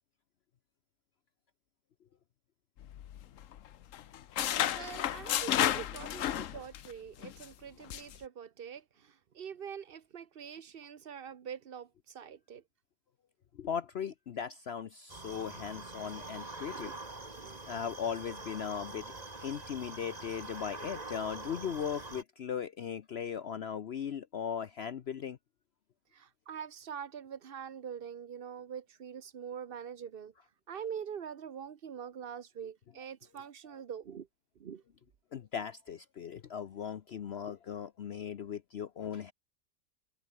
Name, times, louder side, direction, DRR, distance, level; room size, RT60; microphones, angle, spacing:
sound 1, 2.8-3.7 3.9-6.9 7.2-7.5 7.9-8.2, left 11 dB, 75° left, 1.2 m, -32 dB
voice 1, 4.7-12.6 16.7-16.9 17.4-17.6 26.1-30.3 30.7-34.3 34.6-34.8, right 8 dB, 50° right, 1.0 m, -44 dB
voice 2, 13.6-16.9 17.7-19.1 19.4-25.4 33.0-33.1 33.6-33.8 35.3-39.3, left 8 dB, 55° left, 1.0 m, -38 dB
sound 2, 15.1-22.2, right 2 dB, 30° right, 2.3 m, -44 dB
omnidirectional pair, 1.4 m